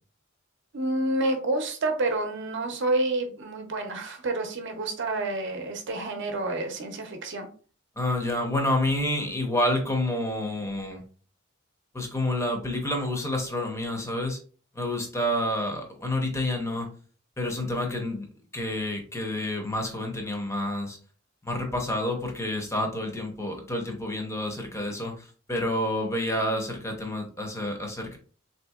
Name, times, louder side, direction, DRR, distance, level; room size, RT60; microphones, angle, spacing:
voice 1, 0.7-7.5, right 2 dB, 65° right, 5 dB, 0.7 m, -29 dB
voice 2, 8.0-11.0 11.9-14.4 14.7-16.9 17.4-18.3 18.5-21.0 21.4-28.2, left 1 dB, 15° left, 2 dB, 0.7 m, -29 dB
3.7 x 2.7 x 2.3 m, 0.41 s
head